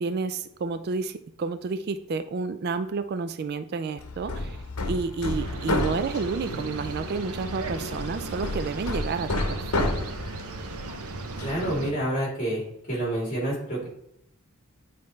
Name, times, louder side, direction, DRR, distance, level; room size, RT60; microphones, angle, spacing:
voice 1, 0.0-4.6 4.9-9.9, right 4 dB, 45° right, 11 dB, 0.3 m, -30 dB
Hammer, 4.0-11.8, left 2 dB, 85° left, 0.9 m, -32 dB
sound 1, 5.3-11.9, right 3 dB, 85° right, 0.7 m, -37 dB
voice 2, 11.4-12.6 12.9-13.9, right 1 dB, 35° left, -3 dB, 2.8 m, -28 dB
9.2 x 4.2 x 3.2 m, 0.77 s
head